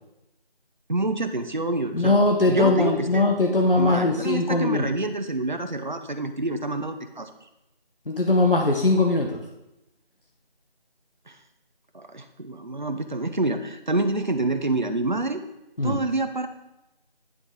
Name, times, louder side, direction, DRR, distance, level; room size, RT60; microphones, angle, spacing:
voice 1, 0.9-2.2 2.5-3.3 3.8-7.3 11.3-11.4 11.9-15.4 15.8-16.5, right 2 dB, 50° right, 8 dB, 0.7 m, -27 dB
voice 2, 1.9-4.9 8.1-9.4 15.8-16.0, left 2 dB, 60° left, 1 dB, 1.1 m, -21 dB
9.1 x 6.3 x 3.6 m, 0.91 s
figure-of-eight pair, 175°, 30 cm